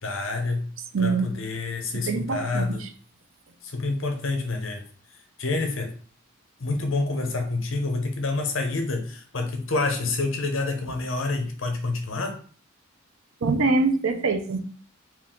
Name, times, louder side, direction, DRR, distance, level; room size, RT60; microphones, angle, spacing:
voice 1, 0.0-2.9 3.6-4.9 5.4-6.0 6.6-12.4, left 3 dB, 70° left, 0.9 m, -28 dB
voice 2, 0.9-1.3 1.9-2.9 13.4-14.6, right 3 dB, 75° right, 0.6 m, -24 dB
4.5 x 2.5 x 3.7 m
head